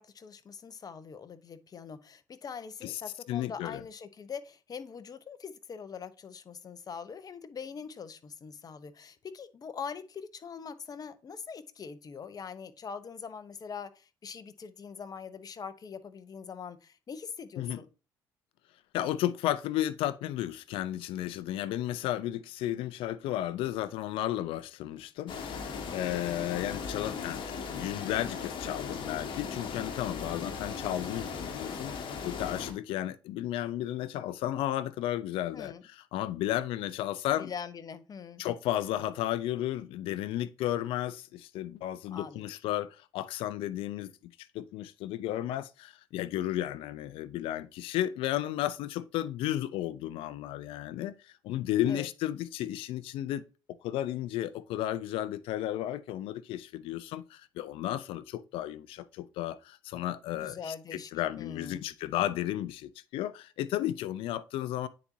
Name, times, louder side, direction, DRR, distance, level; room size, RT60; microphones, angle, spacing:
voice 1, 0.0-17.9 35.5-35.8 37.4-38.4 42.1-42.4 51.9-52.1 60.3-61.1 61.4-61.9, left 6 dB, 45° left, 0.9 m, -43 dB
voice 2, 3.3-3.8 17.6-17.8 18.9-27.5 27.7-32.0 32.2-37.5 38.4-53.4 53.8-64.9, left 13 dB, 80° left, 0.5 m, -33 dB
sound 1, 25.3-32.7, left 5 dB, 65° left, 1.6 m, -38 dB
9.4 x 4.2 x 2.7 m
supercardioid pair, 70°, 9 cm